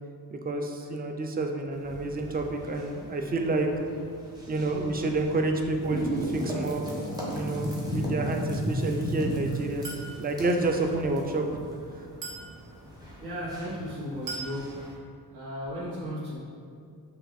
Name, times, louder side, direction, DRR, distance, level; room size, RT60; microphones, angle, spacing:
voice 1, 0.3-3.8 4.5-6.8 7.3-9.8 10.2-11.6 11.9-12.1, right 2 dB, 25° right, 4 dB, 0.3 m, -29 dB
sound 1, 1.7-14.9, equal, 10° right, 0.9 m, -36 dB
Chink clink, 9.8-10.2 12.2-12.5 14.3-14.6, right 3 dB, 50° right, 1.0 m, -37 dB
voice 2, 13.2-15.0 15.3-16.4, equal, 75° right, -7 dB, 1.3 m, -35 dB
5.5 x 2.5 x 2.6 m, 2.3 s
cardioid pair, 85°, 40 cm